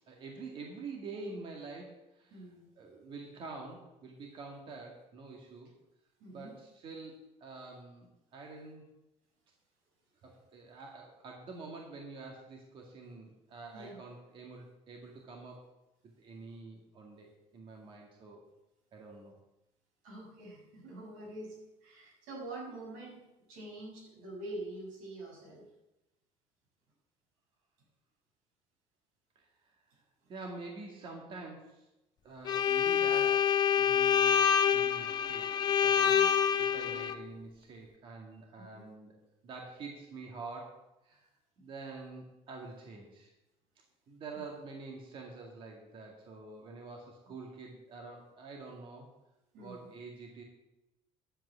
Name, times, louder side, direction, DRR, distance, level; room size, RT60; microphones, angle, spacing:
voice 1, 0.1-2.4 2.8-5.7 6.3-7.1 7.4-8.8 10.2-15.7 16.0-18.4 18.9-19.3 29.4-29.5 30.3-31.9 32.2-33.5 33.8-35.5 35.7-36.3 36.6-39.1 39.4-41.3 41.6-43.3 44.1-49.1 49.6-50.4, right 3 dB, 40° right, 0 dB, 2.1 m, -47 dB
voice 2, 2.3-2.9 6.2-6.5 13.7-14.0 20.0-21.6 21.8-23.2 23.5-25.7 36.0-36.3 38.7-38.9 44.3-44.4 49.5-49.9, right 2 dB, 90° right, -1 dB, 6.1 m, -45 dB
Bowed string instrument, 32.5-37.2, left 8 dB, 30° left, 0.7 m, -27 dB
11.0 x 7.9 x 8.2 m, 0.95 s
cardioid pair, 170°, 13 cm